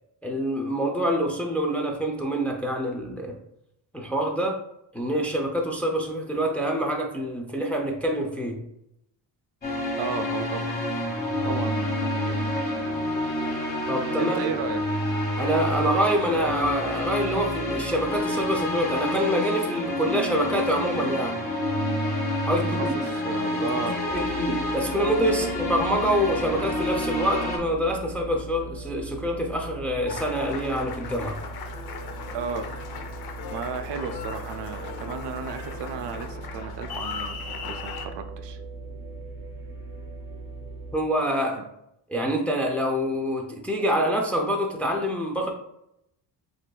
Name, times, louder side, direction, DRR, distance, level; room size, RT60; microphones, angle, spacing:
voice 1, 0.2-3.4 3.9-4.6 4.9-8.6 13.9-14.4 15.4-21.4 22.4-23.0 23.5-31.4 40.9-41.6 42.1-45.5, equal, 5° left, 0 dB, 0.4 m, -26 dB
sound 1, 9.6-27.6, left 1 dB, 20° left, 1.0 m, -28 dB
voice 2, 10.0-10.8 11.4-12.6 14.2-14.8 22.7-24.3 25.3-25.5 32.3-32.7 33.5-38.6 41.6-41.7, right 5 dB, 70° right, 8 dB, 0.6 m, -34 dB
sound 2, 24.1-40.9, right 3 dB, 25° right, 0.7 m, -39 dB
Applause, 30.1-38.1, left 6 dB, 60° left, 0.6 m, -38 dB
7.5 x 2.6 x 2.2 m, 0.78 s
cardioid pair, 150°, 43 cm